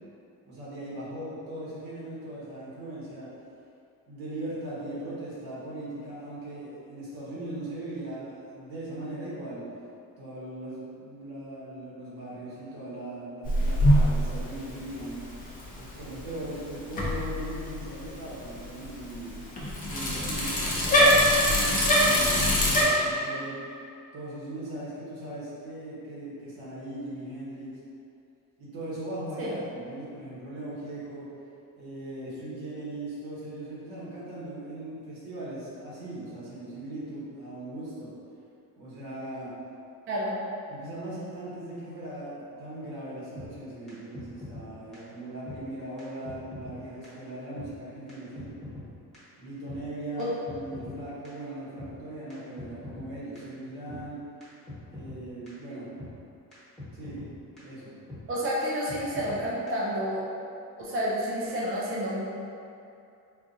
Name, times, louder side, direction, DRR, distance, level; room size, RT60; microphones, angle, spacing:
voice 1, 0.4-3.3 4.1-9.7 10.2-15.2 15.8-19.4 19.8-23.6 24.1-27.8 28.6-31.3 31.8-38.1 38.8-39.5 40.7-48.5 49.4-54.2 54.9-55.9 56.9-57.2 57.6-58.0, right 1 dB, 90° right, -8 dB, 1.4 m, -39 dB
Bicycle, 13.4-22.8, equal, 25° left, 0.6 m, -25 dB
voice 2, 40.1-40.4 50.2-50.3 58.3-60.2 60.8-62.3, equal, 35° right, -6 dB, 0.5 m, -30 dB
sound 1, 43.4-43.5 43.9-44.0 44.1-44.7 44.9-45.0 45.5-45.6 46.0-46.1 46.2-46.8 47.0-47.1 47.6-47.7 48.1-48.2 48.4-48.9 49.1-49.2 49.7-49.8 50.2-51.0 51.2-51.3 51.8-51.9 52.3-52.4 52.6-53.1 53.4-53.5 53.9-54.0 54.4-54.5 54.7-55.2 55.5-55.6 56.0-56.1 56.5-56.6 56.8-57.3 57.6-57.7 58.1-58.2 58.6-58.7 58.9-59.4 59.7-59.8, left 2 dB, ahead, 1.3 m, -42 dB
4.5 x 2.5 x 2.6 m, 2.6 s
cardioid pair, 150°, 36 cm